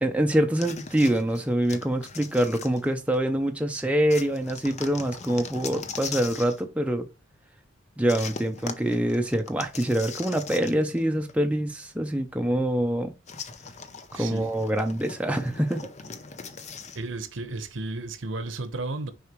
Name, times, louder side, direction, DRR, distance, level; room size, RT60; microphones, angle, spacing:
voice 1, 0.0-7.1 8.0-13.1 14.1-15.9, right 1 dB, 5° right, 0.6 m, -25 dB
sound 1, 0.6-3.3 4.1-6.6 8.1-11.0 11.3-11.4 13.3-17.0, left 5 dB, 35° left, 0.6 m, -40 dB
voice 2, 14.1-14.5 16.9-19.1, right 2 dB, 70° right, 0.9 m, -33 dB
6.5 x 4.8 x 3.0 m
head